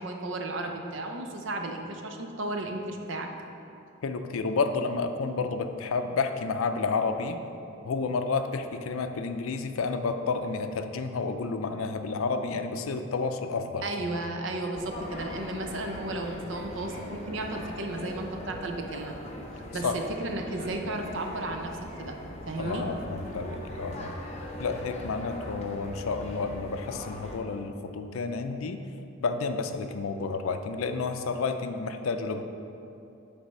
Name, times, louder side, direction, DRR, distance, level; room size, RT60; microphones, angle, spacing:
voice 1, 0.0-3.3 13.8-19.1 19.5-22.2 22.5-22.9, right 2 dB, 60° right, 3 dB, 0.6 m, -34 dB
voice 2, 4.0-7.4 7.8-13.8 19.8-20.0 22.6-24.2 24.6-28.8 29.2-32.4, left 4 dB, 80° left, 8 dB, 0.4 m, -30 dB
sound 1, 14.7-27.4, left 1 dB, 30° left, 0.7 m, -40 dB
8.0 x 3.4 x 5.3 m, 2.8 s
head